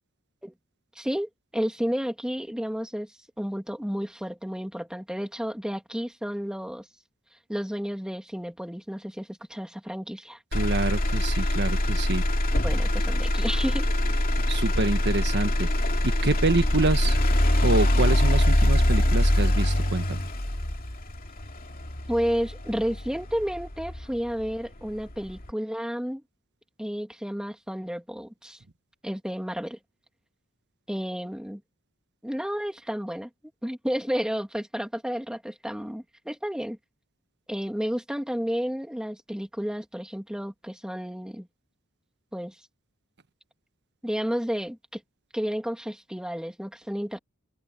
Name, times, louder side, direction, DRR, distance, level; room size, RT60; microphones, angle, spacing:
voice 1, 1.0-3.1 3.4-6.8 7.5-10.4 12.6-13.9 22.1-26.2 26.8-28.6 29.0-29.8 30.9-31.6 32.2-33.3 33.6-36.8 37.5-41.5 42.3-42.5 44.0-45.0 45.3-47.2, equal, 5° right, 2.7 m, -31 dB
Motor vehicle (road), 10.5-24.5 25.0-25.5, left 1 dB, 45° left, 2.4 m, -24 dB
voice 2, 10.5-12.2 14.5-17.2 17.6-20.3, right 2 dB, 55° right, 1.3 m, -27 dB
head